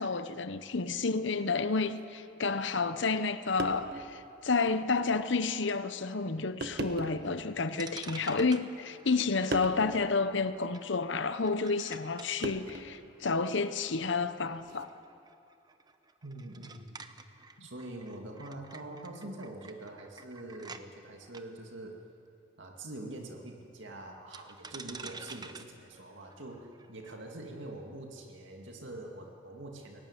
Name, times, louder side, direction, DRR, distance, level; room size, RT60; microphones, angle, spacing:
voice 1, 0.0-14.9 17.6-17.7, left 4 dB, 60° left, 0.8 m, -30 dB
sound 1, 1.9-2.1 3.2-3.3 3.6-4.1 4.6-4.7 5.7-5.9 6.6-7.3 8.2-8.8 9.5-9.9 11.4-11.6 12.4-13.0 14.6-14.9, right 2 dB, 50° right, 1.4 m, -39 dB
sound 2, 7.2-7.3 7.7-20.8 21.3-21.4 24.3-27.1, right 4 dB, 20° right, 0.8 m, -50 dB
voice 2, 16.2-17.0 17.6-22.0 22.6-30.0, right 1 dB, 65° right, 2.3 m, -44 dB
23.0 x 18.0 x 9.8 m
head